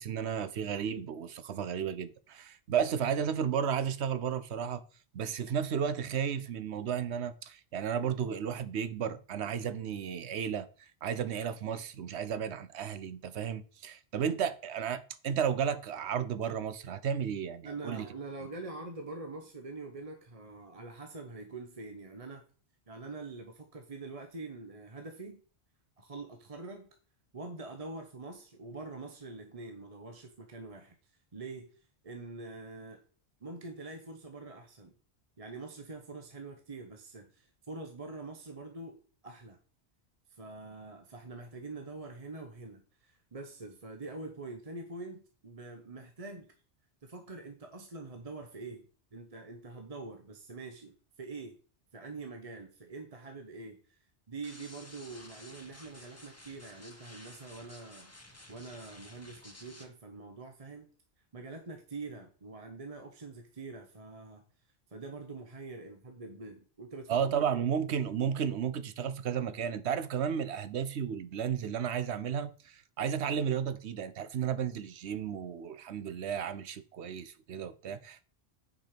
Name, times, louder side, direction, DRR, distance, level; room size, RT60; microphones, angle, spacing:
voice 1, 0.0-4.8 5.1-10.7 11.0-18.1 67.1-78.2, right 8 dB, 85° right, 1.0 m, -33 dB
voice 2, 17.6-22.4 22.9-25.4 26.0-26.9 27.3-33.0 33.4-34.9 35.4-39.0 39.2-39.6 40.3-46.5 47.0-51.5 51.9-54.0 54.3-60.9 61.3-64.4 64.9-67.6, right 3 dB, 35° right, 1.0 m, -45 dB
sound 1, 54.4-59.9, left 1 dB, 15° left, 1.2 m, -53 dB
9.1 x 5.0 x 5.1 m
omnidirectional pair, 1.1 m